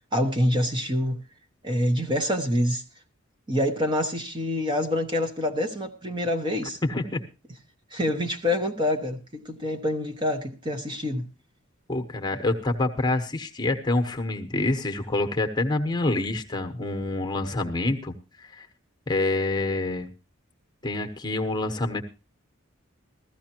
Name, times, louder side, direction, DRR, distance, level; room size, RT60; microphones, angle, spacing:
voice 1, 0.1-1.2 1.6-2.8 3.5-6.8 7.9-11.3, left 1 dB, 20° right, 1.1 m, -26 dB
voice 2, 6.8-7.2 11.9-18.7 19.1-20.1 20.8-22.0, left 2 dB, 20° left, 1.2 m, -27 dB
16.0 x 14.5 x 3.0 m
head